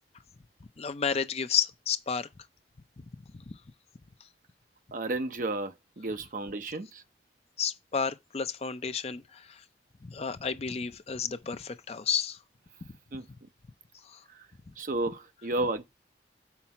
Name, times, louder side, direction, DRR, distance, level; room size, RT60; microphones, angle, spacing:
voice 1, 0.8-2.3 3.0-3.1 3.3-3.5 7.6-9.6 10.0-12.4 14.0-14.2, left 6 dB, 35° left, 0.5 m, -32 dB
voice 2, 4.9-7.0 13.1-13.5 14.3-14.5 14.8-15.8, right 2 dB, 45° right, 0.7 m, -33 dB
5.8 x 4.1 x 5.8 m
head